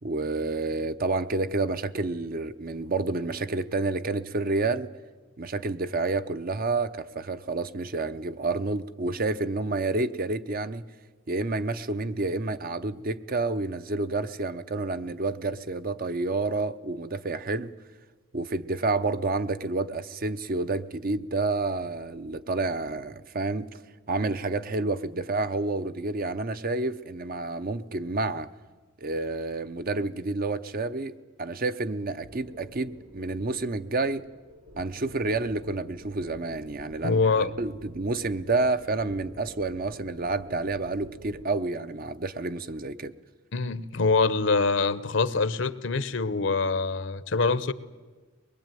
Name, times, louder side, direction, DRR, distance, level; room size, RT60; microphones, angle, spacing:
voice 1, 0.0-4.9 5.4-10.8 11.3-17.7 18.3-23.7 24.1-28.5 29.0-34.2 34.8-43.1, right 3 dB, 45° right, 0.7 m, -29 dB
sound 1, 32.2-41.5, right 1 dB, 80° right, 2.2 m, -49 dB
voice 2, 37.0-37.5 43.5-47.7, left 4 dB, 65° left, 0.8 m, -24 dB
23.0 x 21.0 x 9.1 m
head